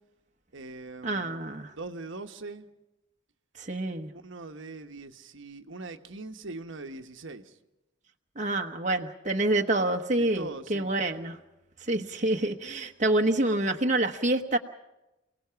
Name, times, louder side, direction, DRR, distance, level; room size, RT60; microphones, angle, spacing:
voice 1, 0.5-1.4 1.7-2.7 4.1-7.6 10.2-10.9, right 3 dB, 60° right, 7 dB, 1.2 m, -41 dB
voice 2, 1.0-1.7 3.6-4.1 8.4-11.4 11.9-14.6, right 2 dB, 35° right, 3 dB, 1.1 m, -27 dB
29.0 x 18.5 x 5.8 m, 0.94 s
head